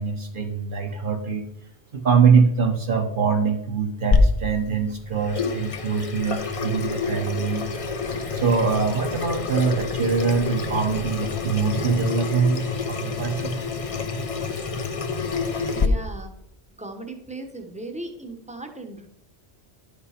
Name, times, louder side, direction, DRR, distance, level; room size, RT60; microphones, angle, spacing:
voice 1, 0.0-1.5 1.9-7.7 8.3-13.7, right 5 dB, 50° right, 5 dB, 1.1 m, -23 dB
Water tap faucet / Sink (filling or washing), 4.1-15.9, left 4 dB, 35° left, 0.6 m, -27 dB
voice 2, 15.7-16.3 16.8-19.1, right 2 dB, 5° right, 5 dB, 1.0 m, -37 dB
11.0 x 5.2 x 5.0 m, 0.78 s
omnidirectional pair, 1.1 m